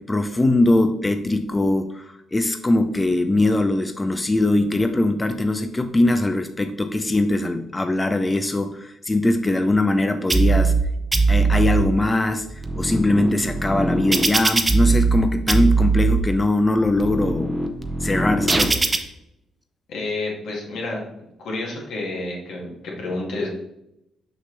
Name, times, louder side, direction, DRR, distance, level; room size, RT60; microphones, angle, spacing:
voice 1, 0.0-10.7 11.3-17.6 18.0-18.8, left 2 dB, 20° left, 8 dB, 0.4 m, -21 dB
sound 1, 10.3-10.8 11.1-11.8 12.4-15.2 15.5-16.2 16.8-19.0, right 3 dB, 20° right, 0.8 m, -20 dB
voice 2, 19.9-21.0 21.4-23.5, left 2 dB, 80° left, -3 dB, 2.3 m, -29 dB
6.3 x 5.8 x 3.2 m, 0.84 s
cardioid pair, 90°, 0 cm